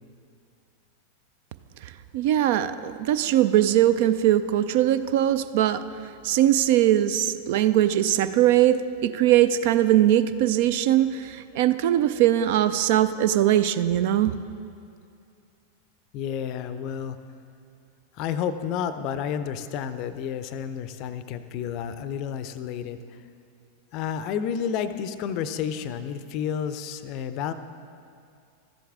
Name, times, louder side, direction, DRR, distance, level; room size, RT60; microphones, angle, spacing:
voice 1, 2.1-5.8 6.2-14.4, right 12 dB, 50° right, 13 dB, 0.3 m, -21 dB
voice 2, 16.1-17.2 18.1-23.0 23.9-27.5, left 8 dB, 40° left, 12 dB, 0.5 m, -30 dB
13.5 x 7.8 x 3.5 m, 2.4 s
figure-of-eight pair, 90°, 0 cm